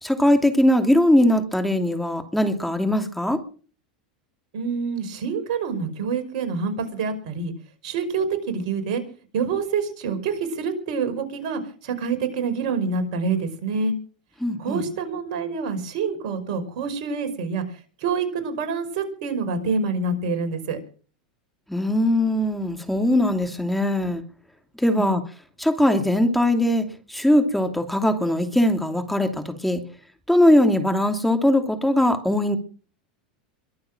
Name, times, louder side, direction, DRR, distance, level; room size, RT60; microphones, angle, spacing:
voice 1, 0.0-3.4 14.4-14.9 21.7-24.2 24.8-25.2 25.6-29.8 30.3-32.6, left 1 dB, ahead, 6 dB, 2.7 m, -20 dB
voice 2, 4.5-7.5 7.8-9.0 9.3-13.9 14.6-20.8 25.0-25.2, right 5 dB, 65° right, 8 dB, 5.4 m, -27 dB
23.0 x 7.7 x 7.6 m, 0.41 s
hypercardioid pair, 95°, 4 cm